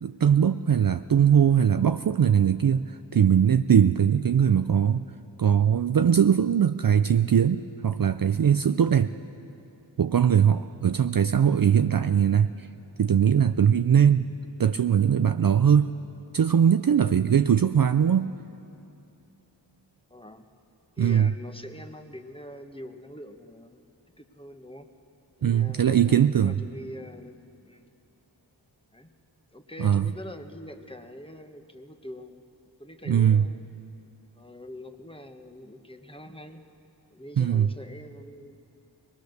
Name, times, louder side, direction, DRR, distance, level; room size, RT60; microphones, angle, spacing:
voice 1, 0.0-2.9 3.1-5.1 5.4-9.1 10.0-12.7 13.0-14.3 14.6-15.9 16.3-18.3 21.0-21.3 25.4-26.6 29.8-30.1 33.1-33.4 37.4-37.7, right 8 dB, 50° right, 10 dB, 0.5 m, -21 dB
voice 2, 20.1-20.5 21.0-23.8 24.2-24.9 25.4-27.4 27.6-27.9 28.9-29.1 29.5-32.4 32.8-33.7 34.3-36.6 37.1-38.6, left 1 dB, 10° left, 5 dB, 1.2 m, -44 dB
23.0 x 19.5 x 6.6 m, 2.7 s
wide cardioid pair, 55°, 45 cm